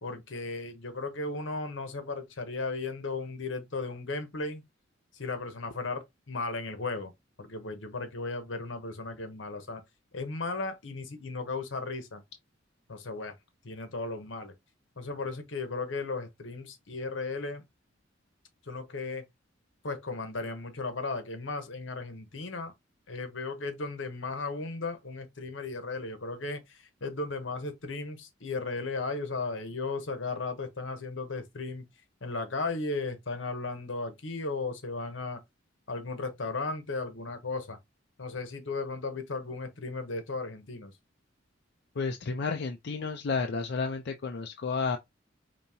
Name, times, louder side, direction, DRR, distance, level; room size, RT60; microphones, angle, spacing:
voice 1, 0.0-4.6 5.1-7.1 7.4-9.8 10.1-12.2 12.9-13.4 13.6-14.5 15.0-17.6 18.6-19.3 19.8-22.7 23.1-31.9 32.2-35.4 35.9-37.8 38.2-40.9, left 3 dB, 80° left, 1.0 m, -35 dB
voice 2, 42.0-45.0, left 4 dB, 60° left, 0.5 m, -31 dB
5.2 x 2.8 x 2.8 m
head